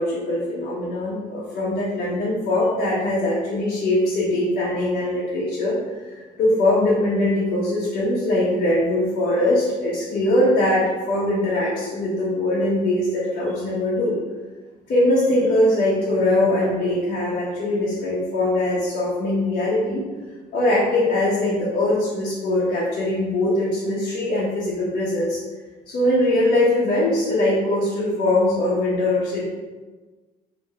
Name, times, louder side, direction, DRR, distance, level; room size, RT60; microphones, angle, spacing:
voice 1, 0.0-14.2 14.9-20.0 20.5-25.4 25.9-29.5, left 1 dB, 55° left, -7 dB, 1.2 m, -21 dB
3.5 x 3.1 x 4.3 m, 1.3 s
cardioid pair, 110°, 17 cm